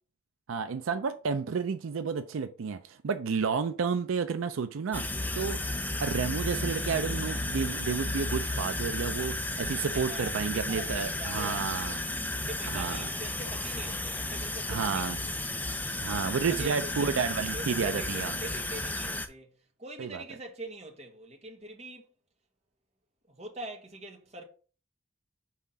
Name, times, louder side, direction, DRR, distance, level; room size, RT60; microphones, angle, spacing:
voice 1, 0.5-5.6 6.0-12.0 12.7-13.1 14.7-15.2 16.0-18.3 20.0-20.2, right 5 dB, 80° right, 0.4 m, -31 dB
sound 1, 4.9-19.3, left 2 dB, 10° left, 0.5 m, -33 dB
voice 2, 9.9-12.0 12.3-15.2 16.5-19.5 19.8-22.1 23.3-24.4, right 2 dB, 30° right, 1.4 m, -43 dB
5.7 x 3.6 x 5.6 m
head